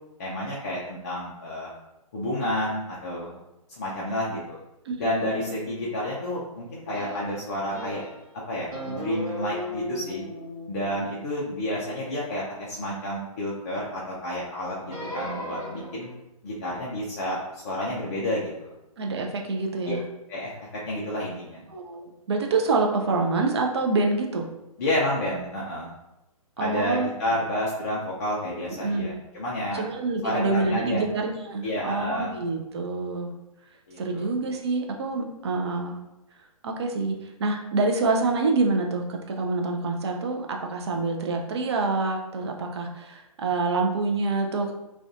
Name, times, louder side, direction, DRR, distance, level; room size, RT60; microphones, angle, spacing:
voice 1, 0.2-1.7 2.1-3.4 3.7-4.6 5.0-8.0 8.5-10.2 10.7-16.1 16.4-18.7 19.9-20.0 20.3-20.5 20.9-21.6 24.8-25.9 26.6-29.8 30.2-31.1 31.6-32.3 33.9-34.3, left 1 dB, 30° left, -6 dB, 0.4 m, -30 dB
voice 2, 4.9-5.5 19.0-20.0 21.7-24.5 26.6-27.1 28.8-29.2 29.7-33.3 34.0-36.0 36.6-44.7, right 3 dB, 45° right, 2 dB, 0.4 m, -26 dB
sound 1, 6.9-8.3 8.7-13.0 14.8-16.1, equal, 65° right, 0.9 m, -37 dB
2.3 x 2.2 x 2.5 m, 0.92 s
figure-of-eight pair, 125°, 19 cm